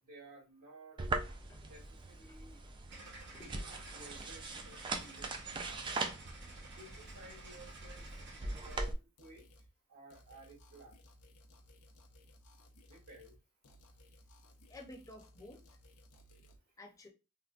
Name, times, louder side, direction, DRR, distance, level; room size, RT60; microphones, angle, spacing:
voice 1, 0.0-1.0 1.6-2.6 3.7-5.3 5.6-5.8 6.7-8.1 8.4-9.4 9.9-11.0 12.9-13.3, right 2 dB, 70° right, 1.6 m, -55 dB
sound 1, 1.0-8.9, right 3 dB, 20° right, 0.3 m, -41 dB
sound 2, 2.9-8.9, right 2 dB, 50° right, 0.9 m, -53 dB
voice 2, 3.3-3.8 14.7-15.6 16.8-17.1, left 1 dB, 15° left, 0.7 m, -52 dB
sound 3, 9.2-9.7 10.1-13.4 13.6-16.6, left 1 dB, 70° left, 0.6 m, -60 dB
3.5 x 2.1 x 2.4 m
head